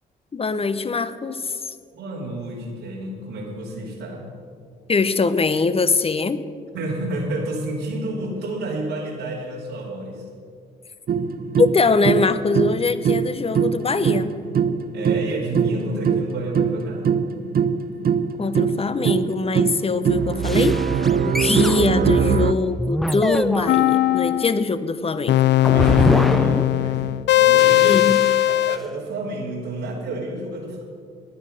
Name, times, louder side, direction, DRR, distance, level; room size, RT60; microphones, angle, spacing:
voice 1, 0.3-1.7 4.9-6.4 11.6-14.3 18.4-20.8 21.4-25.4 27.8-28.3, left 4 dB, 30° left, 13 dB, 0.9 m, -22 dB
voice 2, 1.9-4.3 6.7-10.2 14.9-17.1 24.4-24.5 25.7-28.0 28.5-30.8, right 2 dB, 85° right, -6 dB, 2.9 m, -30 dB
sound 1, 11.1-22.5, right 7 dB, 50° right, 0.7 m, -22 dB
sound 2, 20.4-21.8 22.8-23.7 25.6-26.9 27.6-28.7, equal, ahead, 0.5 m, -25 dB
sound 3, 23.7-24.6 25.3-28.8, left 15 dB, 65° left, 0.5 m, -18 dB
14.0 x 10.0 x 6.5 m, 2.2 s
supercardioid pair, 60°, 20 cm